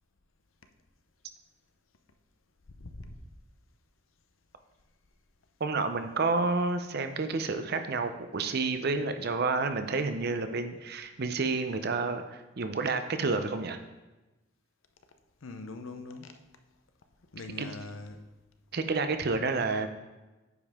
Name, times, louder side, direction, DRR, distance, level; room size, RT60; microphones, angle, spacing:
voice 1, 5.6-13.8 17.6-17.7 18.7-19.9, right 3 dB, 50° right, 8 dB, 0.6 m, -30 dB
voice 2, 15.4-16.3 17.3-18.2, left 3 dB, 90° left, 7 dB, 0.7 m, -42 dB
9.4 x 5.3 x 3.6 m, 1.1 s
head